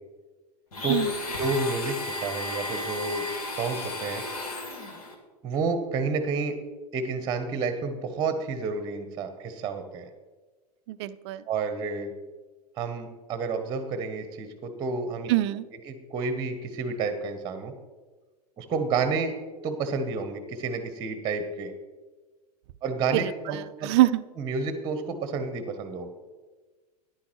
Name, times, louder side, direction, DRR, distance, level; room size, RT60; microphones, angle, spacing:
Domestic sounds home sounds, 0.7-5.1, left 2 dB, 65° left, 2.1 m, -34 dB
voice 1, 1.4-4.2 5.4-6.5 6.9-10.1 11.5-12.1 12.8-15.3 15.9-17.7 18.6-19.3 19.6-21.7 22.8-23.9 24.4-26.1, right 4 dB, 20° right, 8 dB, 1.0 m, -30 dB
voice 2, 10.9-11.4 15.3-15.7 23.1-24.2, right 15 dB, 40° right, 14 dB, 0.5 m, -25 dB
13.5 x 10.5 x 3.1 m, 1.3 s
figure-of-eight pair, 95°, 21 cm